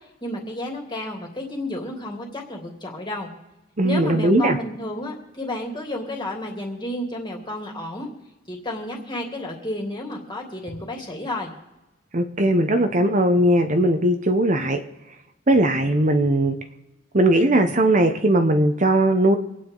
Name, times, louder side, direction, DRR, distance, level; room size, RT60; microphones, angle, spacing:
voice 1, 0.2-3.3 3.8-8.1 8.5-11.5, left 1 dB, 25° left, 0 dB, 3.0 m, -31 dB
voice 2, 3.8-4.6 12.1-14.8 15.5-16.6 17.1-19.4, right 1 dB, 40° right, 6 dB, 1.0 m, -19 dB
26.0 x 9.5 x 4.0 m, 1.0 s
head